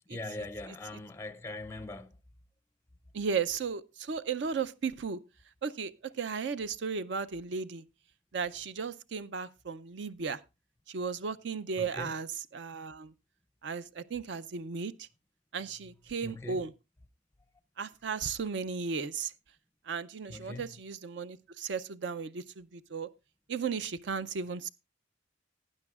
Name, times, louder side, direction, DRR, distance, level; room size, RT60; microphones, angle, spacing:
voice 1, 0.1-2.2 11.8-12.1 16.2-16.7 20.3-20.8, left 2 dB, 15° left, 0.5 m, -41 dB
voice 2, 3.1-5.2 5.6-7.8 8.3-10.4 10.9-12.3 12.5-13.1 13.6-15.1 15.5-16.7 17.8-19.3 19.9-23.1 23.5-24.7, right 5 dB, 65° right, 0.5 m, -35 dB
18.0 x 9.8 x 2.4 m
head